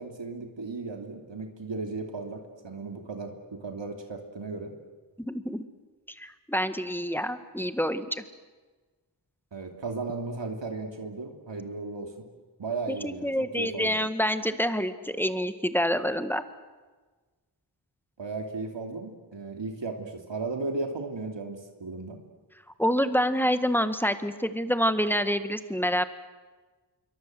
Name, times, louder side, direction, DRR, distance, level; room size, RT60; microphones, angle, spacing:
voice 1, 0.0-4.7 9.5-12.1 12.6-13.3 13.6-14.0 18.2-22.2, right 3 dB, 70° right, 4 dB, 3.0 m, -35 dB
voice 2, 5.3-5.6 6.2-8.2 12.9-16.4 22.8-26.1, equal, 5° left, 10 dB, 1.7 m, -27 dB
27.0 x 23.0 x 7.9 m, 1.3 s
wide cardioid pair, 65°, 45 cm